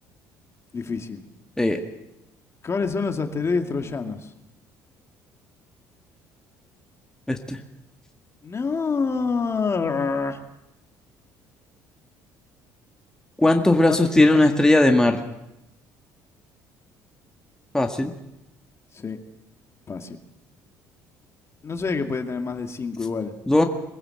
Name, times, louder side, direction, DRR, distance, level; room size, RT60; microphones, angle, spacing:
voice 1, 0.7-1.2 2.6-4.3 8.4-10.4 13.9-14.4 18.9-19.2 19.9-20.2 21.6-23.4, left 4 dB, 35° left, 5 dB, 2.2 m, -27 dB
voice 2, 7.3-7.6 13.4-15.2 17.7-18.1 23.5-23.6, left 2 dB, 10° left, 3 dB, 1.9 m, -18 dB
23.0 x 15.5 x 7.8 m, 0.92 s
supercardioid pair, 75°, 8 cm